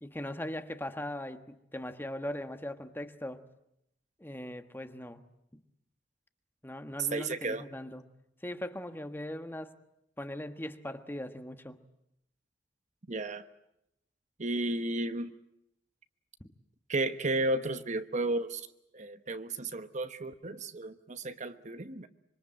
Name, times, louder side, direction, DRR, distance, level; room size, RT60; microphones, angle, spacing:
voice 1, 0.0-3.4 4.2-5.2 5.5-5.6 6.6-8.0 8.4-9.8 10.2-11.8 16.4-16.5, left 1 dB, 10° left, 9 dB, 1.4 m, -40 dB
voice 2, 7.1-7.6 13.1-13.4 14.4-15.4 16.9-18.7 18.9-22.1, right 2 dB, 40° right, 10 dB, 1.1 m, -33 dB
26.0 x 24.5 x 8.9 m, 0.80 s
head